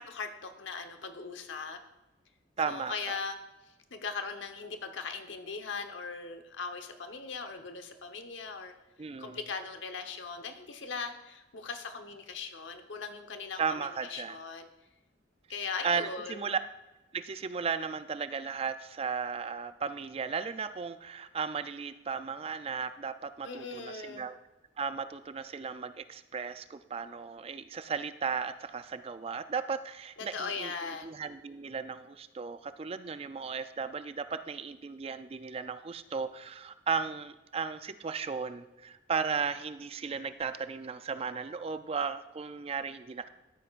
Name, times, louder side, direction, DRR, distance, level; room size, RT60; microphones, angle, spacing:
voice 1, 0.0-1.8 2.6-3.4 3.6-8.7 9.2-14.7 15.5-16.5 23.4-24.3 30.2-31.1, left 4 dB, 85° left, 6 dB, 1.1 m, -39 dB
voice 2, 2.6-3.2 9.0-9.4 13.6-14.4 15.8-16.6 17.1-24.4 24.8-43.3, right 5 dB, 30° right, 11 dB, 0.4 m, -35 dB
13.0 x 9.7 x 2.5 m, 1.0 s
head